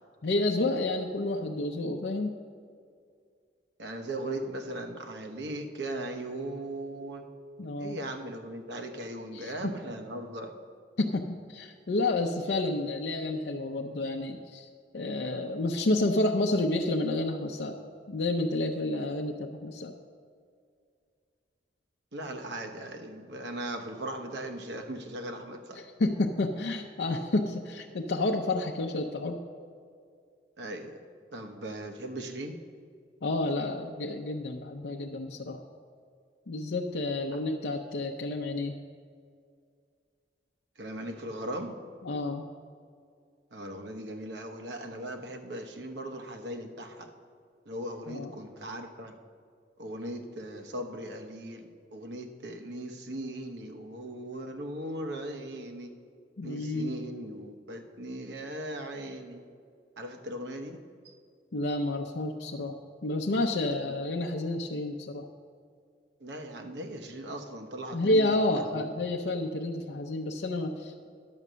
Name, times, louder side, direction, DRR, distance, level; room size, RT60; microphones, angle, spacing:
voice 1, 0.2-2.3 7.6-8.0 9.3-9.7 11.0-14.7 14.9-17.8 18.1-19.9 25.8-29.4 33.2-35.6 36.5-38.8 42.0-42.5 48.1-48.3 56.4-57.0 61.5-65.3 67.9-71.1, left 2 dB, 70° left, 2 dB, 0.6 m, -30 dB
voice 2, 3.8-7.2 7.8-10.5 22.1-25.8 30.6-30.9 31.3-32.6 40.8-41.8 43.5-47.1 47.7-49.2 49.8-55.9 56.4-59.4 60.0-61.1 66.2-68.3 68.6-68.9, right 1 dB, 80° right, 5 dB, 1.0 m, -38 dB
11.0 x 6.7 x 6.2 m, 2.2 s
head